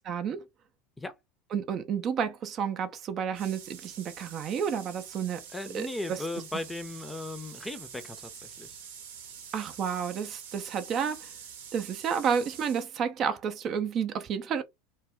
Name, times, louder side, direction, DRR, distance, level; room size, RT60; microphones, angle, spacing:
voice 1, 0.1-0.5 1.5-5.4 5.7-6.2 9.5-11.3 11.7-14.6, right 7 dB, 40° right, 0.5 m, -31 dB
sound 1, 3.3-12.9, right 7 dB, 70° right, 0.8 m, -46 dB
voice 2, 5.5-8.8, left 2 dB, 10° left, 0.6 m, -37 dB
2.3 x 2.1 x 3.5 m
hypercardioid pair, 75°, 0 cm